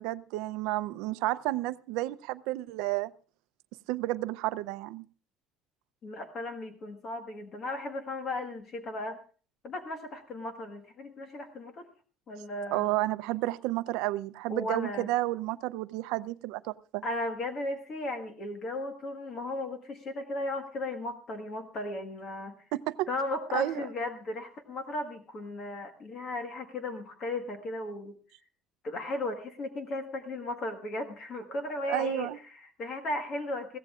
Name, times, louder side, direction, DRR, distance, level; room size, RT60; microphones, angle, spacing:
voice 1, 0.0-3.1 3.9-5.1 12.7-17.0 22.7-23.1 23.5-23.8 31.9-32.4, right 17 dB, 75° right, 15 dB, 0.6 m, -31 dB
voice 2, 6.0-9.2 9.6-11.9 12.3-12.9 14.5-15.1 17.0-22.5 23.1-28.2 28.8-33.8, left 2 dB, 30° left, 6 dB, 1.5 m, -36 dB
21.5 x 16.5 x 2.4 m, 0.39 s
cardioid pair, 180°, 0 cm